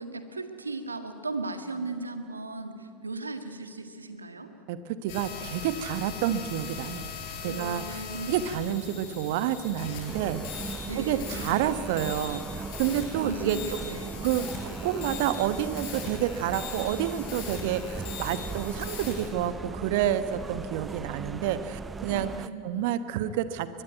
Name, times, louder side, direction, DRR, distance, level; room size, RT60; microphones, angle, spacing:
voice 1, 0.0-4.5 7.4-8.4 10.8-11.5 13.1-14.2 22.1-22.9, right 2 dB, 85° right, 8 dB, 1.8 m, -37 dB
voice 2, 4.7-7.1 7.4-8.0 8.3-10.4 11.0-13.8 14.2-22.3 22.6-23.8, right 11 dB, 60° right, 12 dB, 1.2 m, -29 dB
sound 1, 5.1-19.3, left 7 dB, 55° left, 5.2 m, -40 dB
sound 2, 10.1-22.5, right 4 dB, 20° right, 0.6 m, -38 dB
22.5 x 21.5 x 9.2 m, 2.5 s
figure-of-eight pair, 80°, 0 cm